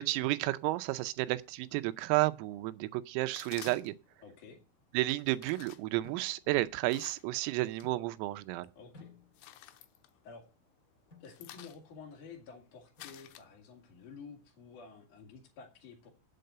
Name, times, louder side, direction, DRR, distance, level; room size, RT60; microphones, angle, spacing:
voice 1, 0.0-3.9 4.9-8.7, right 18 dB, 90° right, 3.4 m, -32 dB
sound 1, 3.3-4.1 5.0-7.9 8.3-8.8 9.1-10.7 11.0-14.0, left 13 dB, 85° left, 3.2 m, -53 dB
sound 2, 3.6-4.3 6.0-6.8 7.8-8.4 8.9-9.7 11.1-11.4 13.0-13.6, left 3 dB, 25° left, 1.9 m, -58 dB
voice 2, 4.2-4.6 8.7-9.1 9.4-9.7 10.2-10.5 11.2-16.1, left 5 dB, 50° left, 3.2 m, -51 dB
8.6 x 7.9 x 6.6 m
omnidirectional pair, 5.8 m